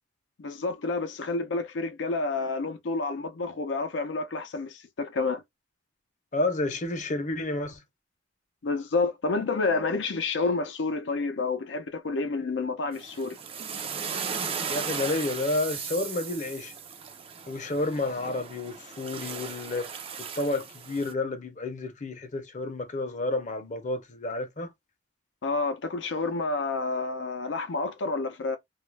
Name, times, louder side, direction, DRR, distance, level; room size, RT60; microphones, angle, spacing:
voice 1, 0.4-5.4 8.6-13.4 25.4-28.6, left 3 dB, 80° left, 0.5 m, -29 dB
voice 2, 6.3-7.8 14.7-16.7 17.5-19.9 20.2-24.7, left 2 dB, 40° left, 0.6 m, -30 dB
sound 1, 12.9-21.1, right 6 dB, 30° right, 0.4 m, -36 dB
2.3 x 2.0 x 3.1 m
head